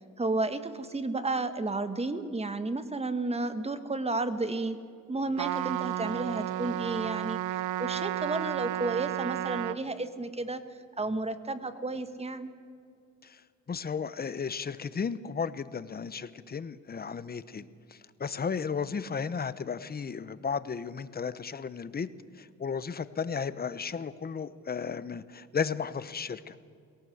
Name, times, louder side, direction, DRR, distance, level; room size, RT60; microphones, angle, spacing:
voice 1, 0.2-4.8 5.1-7.4 7.8-10.6 11.0-12.5, right 2 dB, 20° right, 10 dB, 1.5 m, -32 dB
Trumpet, 5.4-9.8, right 14 dB, 80° right, 0.7 m, -32 dB
voice 2, 13.2-22.1 22.3-26.6, left 6 dB, 30° left, 15 dB, 0.9 m, -34 dB
22.0 x 17.5 x 7.9 m, 2.3 s
cardioid pair, 90°, 30 cm